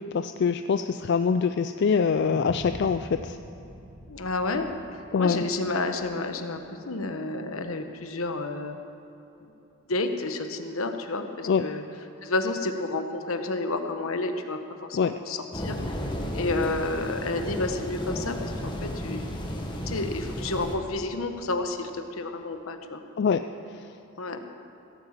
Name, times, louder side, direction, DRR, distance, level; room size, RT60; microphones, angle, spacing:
voice 1, 0.0-3.4 5.1-5.4 11.5-11.6 14.9-15.2 23.2-23.4, left 6 dB, 50° left, 9 dB, 0.3 m, -24 dB
sound 1, 2.2-6.5, equal, 80° right, 3.9 m, -43 dB
voice 2, 4.1-8.8 9.4-9.5 9.9-11.8 12.2-16.0 16.3-19.2 19.9-23.0 24.2-24.4, left 2 dB, 75° left, 6 dB, 1.1 m, -30 dB
sound 2, 15.5-20.8, equal, 20° left, 1.5 m, -33 dB
16.5 x 8.8 x 7.3 m, 2.9 s
head